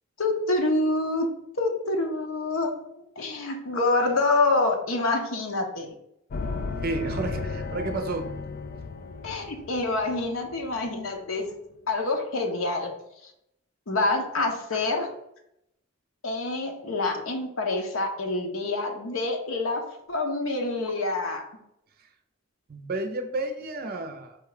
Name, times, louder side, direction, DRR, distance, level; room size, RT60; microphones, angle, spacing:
voice 1, 0.2-1.3 1.6-2.8 3.2-6.0 9.2-11.4 11.9-12.9 13.2-13.3 13.9-15.1 16.2-19.8 20.1-21.5, left 2 dB, 85° left, 2 dB, 0.8 m, -26 dB
sound 1, 6.3-11.0, left 4 dB, 45° left, 0.4 m, -35 dB
voice 2, 6.8-8.3 22.7-24.4, right 2 dB, 50° right, 6 dB, 0.6 m, -31 dB
4.7 x 2.3 x 4.8 m, 0.79 s
head